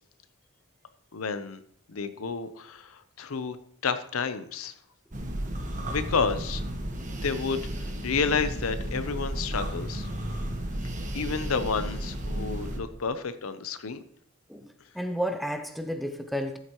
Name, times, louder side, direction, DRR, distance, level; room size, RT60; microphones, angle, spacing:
voice 1, 1.1-1.6 1.9-3.6 3.8-4.7 5.9-6.6 7.2-10.1 11.1-14.0, left 5 dB, 80° left, 11 dB, 0.7 m, -30 dB
sound 1, 5.1-12.8, right 1 dB, 35° right, 1.3 m, -33 dB
voice 2, 14.9-16.6, equal, ahead, 7 dB, 0.6 m, -31 dB
13.0 x 7.7 x 3.0 m, 0.64 s
head